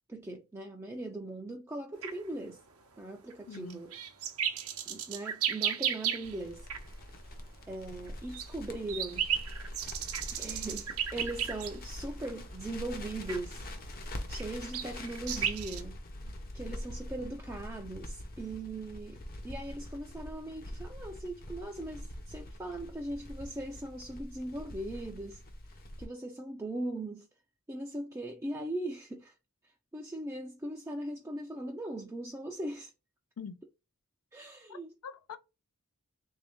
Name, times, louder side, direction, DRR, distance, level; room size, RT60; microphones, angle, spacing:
voice 1, 0.1-2.6 3.0-4.0 4.9-6.7 7.7-9.3 10.3-13.7 14.3-16.0 16.5-19.2 19.4-25.4 26.0-27.3 27.7-29.3 29.9-32.9 34.3-34.9, right 1 dB, 15° right, 0.4 m, -39 dB
sound 1, 2.0-2.2 3.3-6.4 6.7-6.8 8.1-11.9 12.2-12.4 13.3-13.4 14.1-15.8, right 9 dB, 75° right, 0.7 m, -34 dB
voice 2, 3.5-3.8 33.4-33.6 34.7-35.4, left 6 dB, 85° left, 0.5 m, -44 dB
Crackle, 6.2-26.1, left 1 dB, 45° left, 0.7 m, -44 dB
3.5 x 2.7 x 3.5 m
head